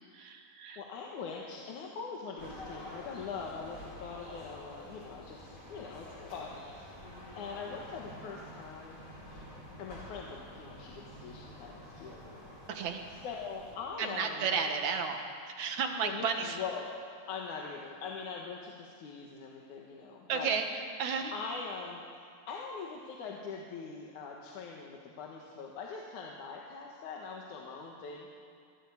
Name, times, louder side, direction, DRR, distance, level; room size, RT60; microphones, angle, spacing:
voice 1, 0.1-0.8 12.7-13.0 14.0-16.6 20.3-20.7 21.0-21.3, right 6 dB, 70° right, 4 dB, 2.7 m, -33 dB
voice 2, 0.8-6.6 7.4-9.0 9.8-12.2 13.1-14.5 16.0-16.9 17.3-20.5 21.3-22.0 22.5-28.3, left 5 dB, 75° left, -1 dB, 2.9 m, -42 dB
sound 1, 2.4-13.7, left 1 dB, 30° left, 5.0 m, -48 dB
24.5 x 13.0 x 8.4 m, 2.2 s
omnidirectional pair, 3.5 m